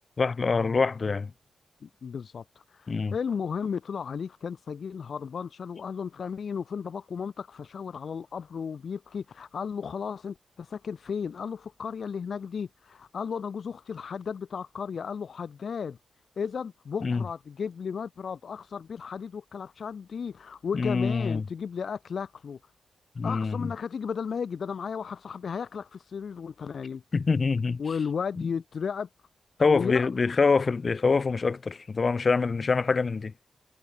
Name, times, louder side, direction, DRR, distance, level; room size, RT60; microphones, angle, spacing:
voice 1, 0.2-1.3 2.9-3.1 17.0-17.2 20.7-21.4 23.1-23.7 27.1-27.8 28.4-28.5 29.6-33.3, left 4 dB, 40° left, 3.0 m, -25 dB
voice 2, 1.8-16.0 16.4-22.6 23.2-27.0 27.8-29.1 29.7-30.3, left 6 dB, 60° left, 1.8 m, -34 dB
wide cardioid pair, 105°, 0 cm